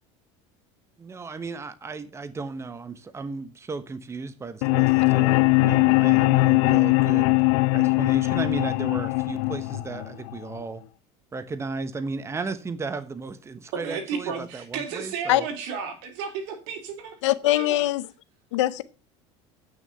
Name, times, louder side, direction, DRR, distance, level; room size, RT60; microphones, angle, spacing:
voice 1, 1.0-7.3 7.7-10.8 11.3-15.5, right 4 dB, 20° right, 1.1 m, -35 dB
sound 1, 4.6-10.6, left 24 dB, 70° left, 0.4 m, -21 dB
voice 2, 13.7-17.1 17.4-17.9, right 6 dB, 75° right, 3.6 m, -33 dB
voice 3, 17.2-18.1 18.5-18.8, left 15 dB, 90° left, 0.8 m, -22 dB
9.1 x 6.4 x 6.8 m
supercardioid pair, 105°, 15 cm